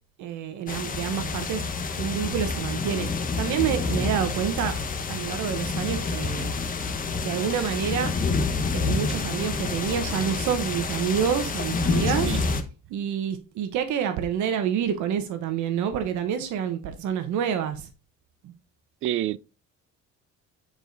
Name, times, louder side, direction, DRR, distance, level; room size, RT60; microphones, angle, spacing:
voice 1, 0.2-3.1 3.3-4.8 5.1-6.5 7.2-8.1 8.7-12.3 12.9-17.9 18.4-18.5, right 8 dB, 75° right, 1.2 m, -28 dB
sound 1, 0.7-12.6, left 4 dB, 30° left, 1.1 m, -28 dB
voice 2, 12.1-12.4 19.0-19.4, right 13 dB, 45° right, 0.4 m, -28 dB
9.1 x 5.0 x 3.9 m
cardioid pair, 150°, 30 cm